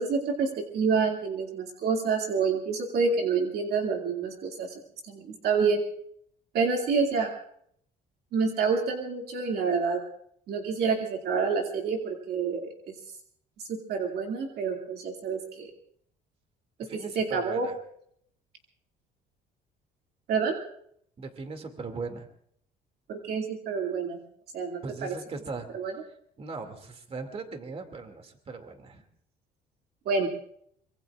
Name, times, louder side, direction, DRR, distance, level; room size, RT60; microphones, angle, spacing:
voice 1, 0.0-4.7 5.1-5.8 6.5-7.3 8.3-10.0 10.5-12.9 13.7-15.7 16.9-17.7 20.3-20.6 23.1-24.2 24.5-25.1 25.7-25.9 30.1-30.3, right 5 dB, 70° right, 1 dB, 2.4 m, -28 dB
voice 2, 16.8-17.8 21.2-22.3 24.8-25.7 26.1-29.0, right 4 dB, 35° right, 6 dB, 2.4 m, -39 dB
25.0 x 23.0 x 2.4 m, 0.67 s
cardioid pair, 110°, 17 cm